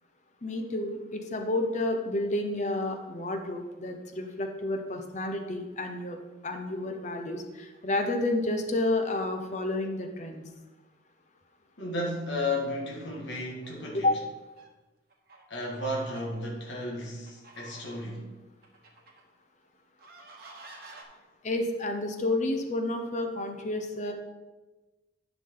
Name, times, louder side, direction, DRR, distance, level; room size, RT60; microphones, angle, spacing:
voice 1, 0.4-6.2 6.4-10.4 14.0-14.2 21.4-24.1, left 2 dB, 40° left, 4 dB, 0.9 m, -30 dB
voice 2, 11.8-14.1 15.5-18.3, left 1 dB, 75° left, -2 dB, 1.8 m, -33 dB
sound 1, 13.5-14.2 14.6-14.7 15.1-18.1 18.6-19.2 20.0-21.0, right 3 dB, 55° right, 1.4 m, -51 dB
10.5 x 6.1 x 3.9 m, 1.2 s
head